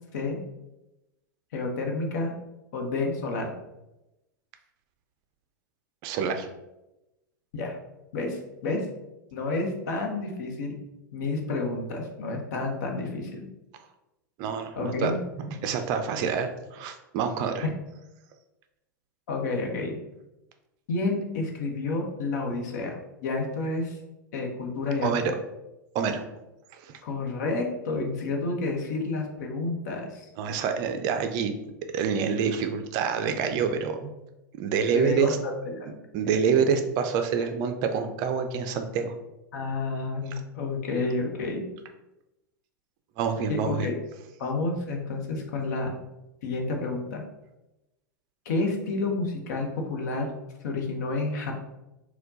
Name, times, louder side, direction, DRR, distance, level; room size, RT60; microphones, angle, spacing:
voice 1, 1.5-2.3 2.7-3.5 7.5-7.7 8.1-8.9 9.3-10.8 11.1-13.4 14.8-15.2 19.3-20.0 20.9-23.0 23.2-24.0 24.3-25.1 27.0-30.3 34.9-35.9 39.5-41.6 43.5-44.0 44.4-45.9 46.4-47.2 48.4-50.3 50.6-51.5, left 3 dB, 55° left, 2 dB, 0.9 m, -30 dB
voice 2, 6.0-6.5 14.4-15.1 15.4-17.7 25.0-25.4 25.9-26.2 26.7-26.9 30.4-31.5 31.9-34.1 34.6-35.4 36.1-39.1 43.2-43.9, right 6 dB, 40° right, 7 dB, 0.4 m, -27 dB
4.3 x 2.2 x 3.9 m, 0.95 s
figure-of-eight pair, 95°, 11 cm